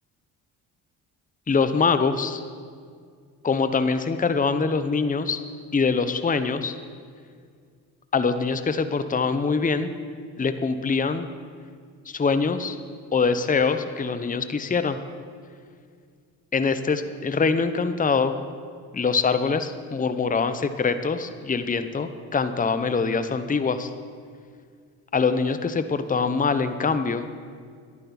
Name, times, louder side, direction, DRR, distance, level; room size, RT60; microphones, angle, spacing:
voice 1, 1.5-2.4 3.4-5.4 5.7-6.8 8.1-9.9 10.4-11.3 12.1-12.8 13.1-15.0 16.5-18.4 18.9-23.9 25.1-27.2, left 5 dB, 20° left, 10 dB, 0.8 m, -24 dB
11.0 x 11.0 x 6.0 m, 2.1 s
supercardioid pair, 65°, 45 cm